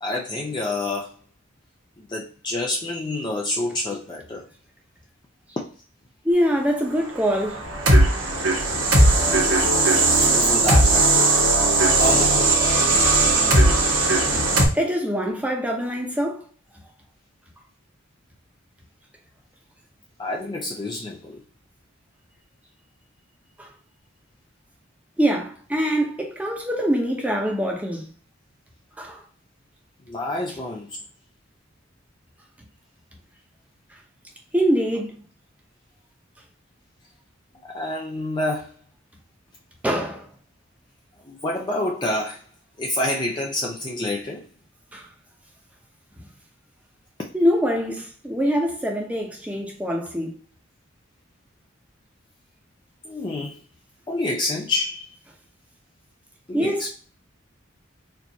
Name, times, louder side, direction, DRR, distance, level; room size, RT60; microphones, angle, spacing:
voice 1, 0.0-1.1 2.0-4.4 10.2-11.1 12.0-12.5 20.2-21.4 30.1-31.0 37.7-38.7 41.3-42.4 42.8-44.4 53.0-53.6 54.1-55.1 56.5-56.9, left 2 dB, 20° left, 0.5 m, -28 dB
voice 2, 6.2-7.6 12.6-12.7 14.7-16.4 25.2-28.0 29.0-29.2 34.5-35.1 39.8-40.3 44.9-45.0 47.3-50.3 56.5-56.9, equal, 5° right, 0.7 m, -24 dB
sound 1, 7.3-14.7, right 2 dB, 75° right, 1.4 m, -18 dB
4.3 x 2.6 x 2.8 m
head